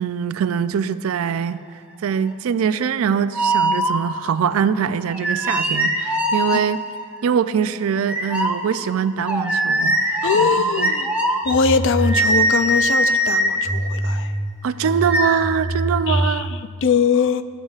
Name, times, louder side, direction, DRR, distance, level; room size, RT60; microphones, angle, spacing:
voice 1, 0.0-1.6 2.0-6.8 7.2-10.9 14.6-16.5, right 7 dB, 70° right, 0.3 m, -23 dB
sound 1, 3.3-4.4 5.1-7.0 8.1-16.3, right 1 dB, 5° right, 0.6 m, -22 dB
voice 2, 10.2-11.1 11.4-14.3 16.1-17.4, left 6 dB, 60° left, 0.4 m, -21 dB
15.5 x 7.3 x 2.4 m
head